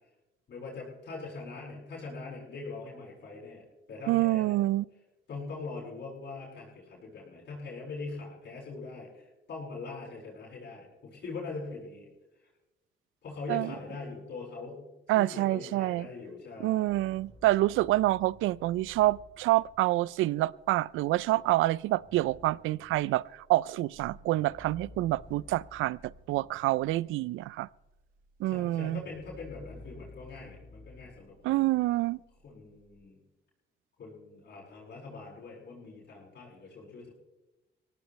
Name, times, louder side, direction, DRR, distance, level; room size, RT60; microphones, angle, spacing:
voice 1, 0.5-4.6 5.3-12.1 13.2-16.9 28.4-31.8 32.4-33.2 34.0-37.1, left 3 dB, 60° left, 7.6 m, -42 dB
voice 2, 4.1-4.8 13.5-13.7 15.1-16.1 16.6-27.7 28.4-29.0 31.4-32.2, right 17 dB, 85° right, 0.4 m, -27 dB
sound 1, 16.8-27.1 27.4-33.1, left 1 dB, 45° right, 7.7 m, -54 dB
23.0 x 17.5 x 3.2 m
cardioid pair, 90°, 20 cm